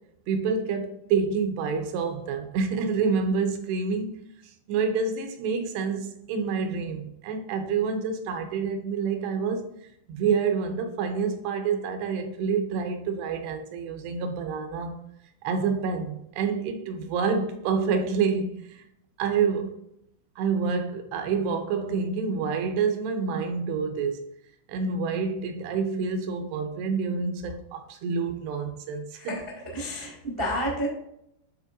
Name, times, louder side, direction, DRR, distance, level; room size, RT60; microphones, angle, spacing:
voice 1, 0.3-4.2 4.7-9.7 10.1-15.0 15.4-18.8 19.2-19.8 20.4-24.3 24.7-29.4, right 5 dB, 85° right, 2.7 m, -28 dB
voice 2, 29.7-30.9, equal, 55° right, 0.6 m, -30 dB
11.0 x 4.4 x 2.5 m
omnidirectional pair, 5.0 m